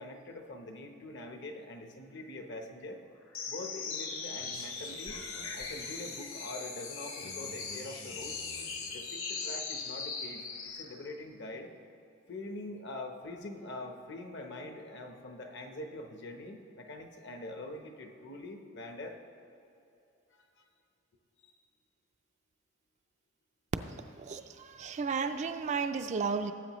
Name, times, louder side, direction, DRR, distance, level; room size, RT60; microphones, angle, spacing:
voice 1, 0.0-3.0 3.5-5.2 5.5-8.4 8.9-11.7 12.3-19.2 20.3-20.4 21.4-21.5, left 2 dB, 55° left, 4 dB, 0.9 m, -44 dB
sound 1, 3.3-10.9, left 4 dB, 75° left, 1.3 m, -39 dB
voice 2, 23.8-26.5, right 5 dB, 35° right, 9 dB, 0.3 m, -34 dB
17.5 x 8.0 x 3.0 m, 2.7 s
head